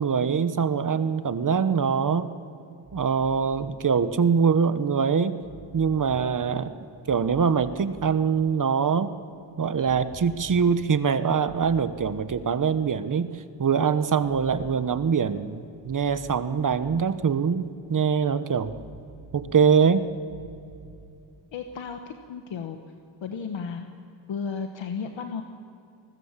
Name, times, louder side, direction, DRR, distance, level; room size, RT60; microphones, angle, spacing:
voice 1, 0.0-2.3 2.9-5.4 5.7-6.7 7.1-9.1 9.6-13.3 13.6-18.7 19.3-20.1, right 6 dB, 45° right, 12 dB, 1.1 m, -23 dB
sound 1, 2.8-3.7 5.4-6.4 7.1-8.1 9.8-10.7 11.5-12.7 14.2-15.2 15.9-17.1 18.6-19.6 20.3-21.3, right 3 dB, 65° right, 3.6 m, -47 dB
voice 2, 21.5-22.0 22.3-22.8 23.2-23.9 24.3-25.4, left 6 dB, 80° left, 5 dB, 1.4 m, -33 dB
28.5 x 20.0 x 7.5 m, 2.6 s
cardioid pair, 105°, 45 cm